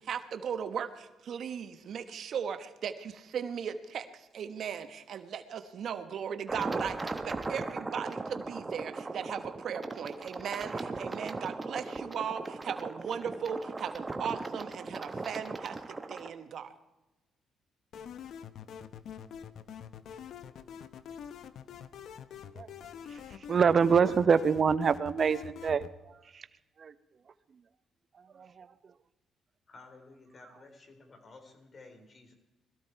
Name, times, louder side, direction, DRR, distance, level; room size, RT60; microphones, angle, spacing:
voice 1, 0.0-16.7, right 7 dB, 65° right, 10 dB, 1.2 m, -37 dB
sound 1, 6.5-16.3, right 3 dB, 25° right, 1.3 m, -38 dB
sound 2, 17.9-25.9, left 7 dB, 70° left, 0.9 m, -45 dB
voice 2, 23.5-26.5 26.8-26.9 28.2-28.7, right 6 dB, 45° right, 14 dB, 0.9 m, -26 dB
voice 3, 29.7-32.3, left 3 dB, 40° left, 5 dB, 3.8 m, -53 dB
21.0 x 14.5 x 4.6 m, 1.0 s
cardioid pair, 90°, 0 cm